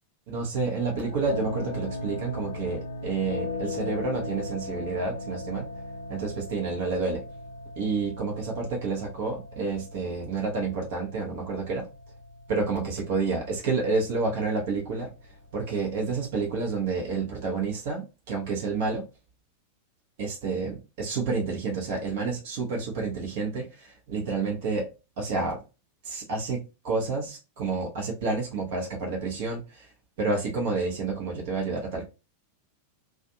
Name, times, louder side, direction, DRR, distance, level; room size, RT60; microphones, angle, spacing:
voice 1, 0.3-5.7 6.1-7.2 7.8-11.9 12.5-15.1 15.5-19.0 20.2-24.9 25.2-25.6 26.0-29.9 30.2-32.1, right 4 dB, 50° right, 0.8 m, -29 dB
sound 1, 0.9-17.4, left 2 dB, 65° left, 0.3 m, -39 dB
2.5 x 2.2 x 2.6 m
figure-of-eight pair, 90°, 0 cm